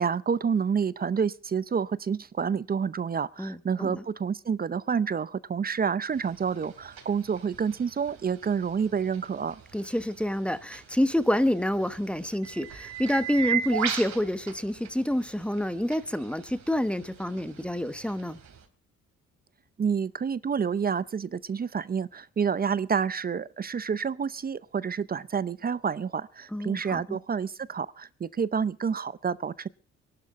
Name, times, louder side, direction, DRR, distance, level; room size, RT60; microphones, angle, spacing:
voice 1, 0.0-9.6 19.8-29.7, right 6 dB, 30° right, 0.6 m, -29 dB
voice 2, 3.4-4.0 9.7-18.4 26.5-27.2, left 1 dB, 5° left, 1.0 m, -28 dB
sound 1, 6.1-18.6, right 8 dB, 65° right, 3.2 m, -38 dB
23.5 x 12.0 x 3.6 m
cardioid pair, 90°, 30 cm